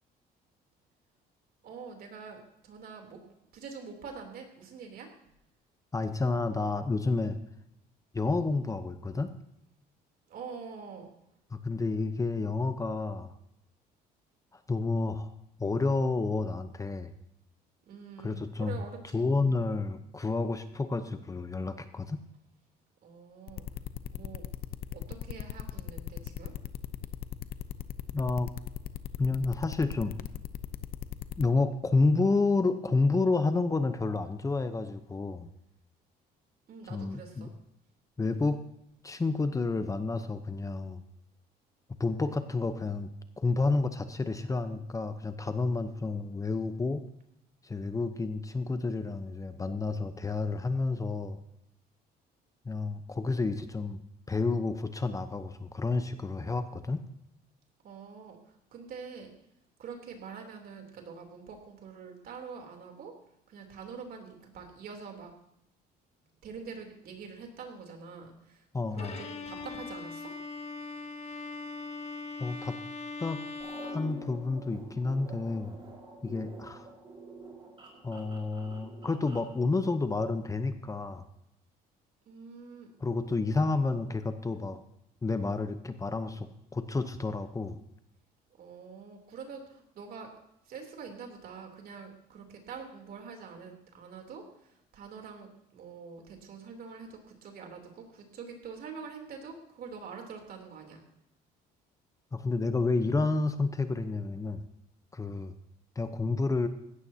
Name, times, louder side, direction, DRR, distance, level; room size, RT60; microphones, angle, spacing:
voice 1, 1.6-3.2 3.5-5.1 10.3-11.1 17.9-19.6 23.0-23.7 24.1-24.4 24.9-26.5 36.7-37.6 57.8-59.3 59.8-63.1 63.5-65.3 66.4-68.7 68.9-70.3 82.2-82.9 83.4-83.6 88.6-90.3 90.6-101.0 105.3-105.4, right 5 dB, 60° right, 2 dB, 3.3 m, -45 dB
voice 2, 5.9-7.4 8.1-9.3 11.5-13.3 14.7-15.3 15.6-17.1 18.2-18.8 19.1-22.2 28.1-28.5 29.2-30.1 31.4-35.5 36.9-37.5 38.2-38.6 39.0-41.0 42.0-43.1 43.4-47.0 47.6-51.4 52.6-54.0 54.3-57.0 68.7-69.2 72.4-72.7 73.2-73.4 73.8-75.8 76.2-76.9 78.0-81.2 83.0-84.8 85.2-87.8 102.3-104.6 105.1-105.5 106.0-106.7, left 3 dB, 20° left, 9 dB, 0.8 m, -30 dB
sound 1, 23.5-31.4, left 11 dB, 60° left, 0.8 m, -38 dB
Bowed string instrument, 69.0-74.9, left 3 dB, 40° left, 1.7 m, -41 dB
sound 2, 73.6-79.5, right 3 dB, 30° right, 4.8 m, -48 dB
16.5 x 13.0 x 2.8 m, 0.80 s
cardioid pair, 110°, 17 cm